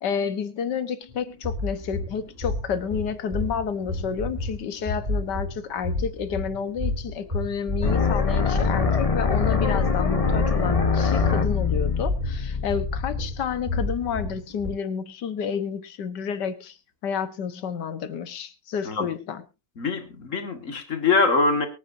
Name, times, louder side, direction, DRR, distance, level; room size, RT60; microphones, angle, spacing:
voice 1, 0.0-16.8 17.0-19.4, left 7 dB, 90° left, 1.8 m, -30 dB
sound 1, 1.1-14.7, left 2 dB, 25° right, 7.7 m, -31 dB
sound 2, 7.8-13.8, left 5 dB, 25° left, 0.9 m, -24 dB
voice 2, 19.8-21.7, left 3 dB, 50° left, 2.1 m, -23 dB
23.5 x 9.2 x 2.7 m
omnidirectional pair, 1.8 m